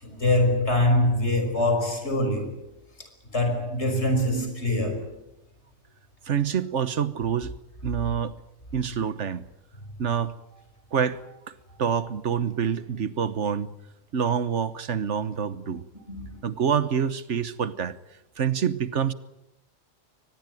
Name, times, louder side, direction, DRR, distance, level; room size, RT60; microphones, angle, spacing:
voice 1, 0.0-2.6 3.3-5.1 16.1-16.4, left 1 dB, 65° left, 5.8 m, -24 dB
voice 2, 6.3-7.5 7.8-8.3 8.7-9.4 10.0-10.3 10.9-11.4 11.8-13.7 14.1-15.8 16.4-18.0 18.4-19.1, right 7 dB, 70° right, 1.4 m, -26 dB
23.5 x 20.5 x 9.1 m
omnidirectional pair, 1.3 m